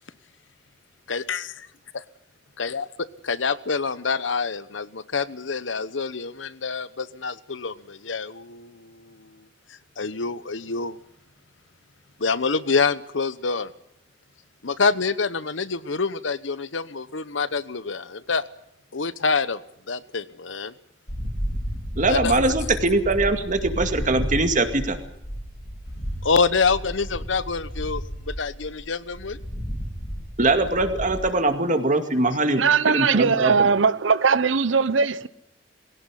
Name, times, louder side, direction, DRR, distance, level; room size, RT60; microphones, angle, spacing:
voice 1, 1.1-1.5 2.6-9.3 9.7-11.0 12.2-13.7 14.6-18.4 18.9-19.6 19.9-20.7 22.1-22.4 26.2-29.4, left 4 dB, 80° left, 1.0 m, -26 dB
sound 1, 21.1-31.3, equal, 40° left, 3.7 m, -32 dB
voice 2, 22.0-25.0 30.4-33.5, right 2 dB, 45° right, 2.3 m, -22 dB
voice 3, 32.6-35.3, right 5 dB, 85° right, 0.8 m, -20 dB
22.0 x 17.0 x 9.9 m
head